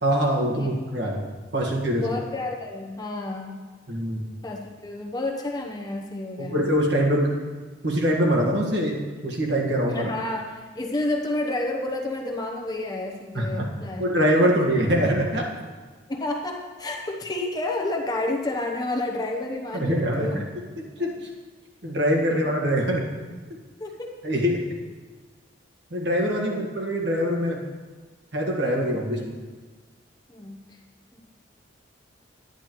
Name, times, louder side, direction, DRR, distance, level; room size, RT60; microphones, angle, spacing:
voice 1, 0.0-1.2 1.5-2.0 3.9-4.2 6.4-7.3 7.8-10.0 13.3-13.7 14.0-15.5 19.7-20.4 21.0-21.1 21.8-23.0 24.2-24.6 25.9-27.6 28.3-29.3, equal, 65° right, -1 dB, 1.6 m, -23 dB
voice 2, 2.0-3.5 4.4-6.7 9.9-14.0 14.4-14.7 16.1-20.4 21.0-21.1 22.3-22.5 23.8-24.2 26.5-26.6 30.3-30.8 31.1-31.2, left 2 dB, 20° left, 0 dB, 0.8 m, -30 dB
10.5 x 10.0 x 3.0 m, 1.4 s
head